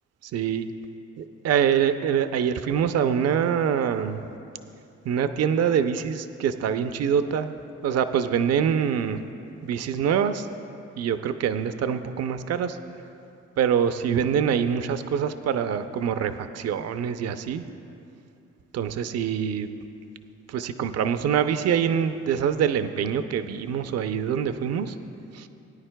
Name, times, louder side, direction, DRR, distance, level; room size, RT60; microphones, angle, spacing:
voice 1, 0.2-0.7 1.2-4.2 5.0-7.5 7.8-9.2 9.6-10.5 11.0-12.8 13.6-17.6 18.7-19.7 20.5-25.0 25.3-25.5, right 8 dB, 55° right, 10 dB, 0.5 m, -25 dB
19.0 x 9.8 x 2.2 m, 2.7 s
cardioid pair, 90°, 30 cm